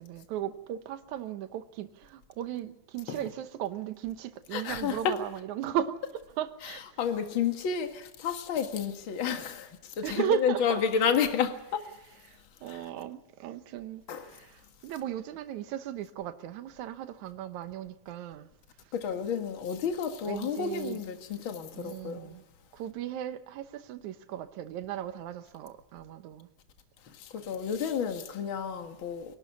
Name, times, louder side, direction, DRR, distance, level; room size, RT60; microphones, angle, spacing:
voice 1, 0.0-6.0 6.4-7.0 10.0-11.0 12.3-18.5 20.3-21.0 21.7-22.4 22.7-26.5, right 10 dB, 80° right, 2.4 m, -36 dB
voice 2, 4.5-5.1 6.6-6.7 7.0-11.9 12.7-12.8 14.1-14.4 18.9-22.4 27.1-29.4, left 7 dB, 45° left, 2.2 m, -31 dB
25.5 x 12.0 x 9.6 m
omnidirectional pair, 3.4 m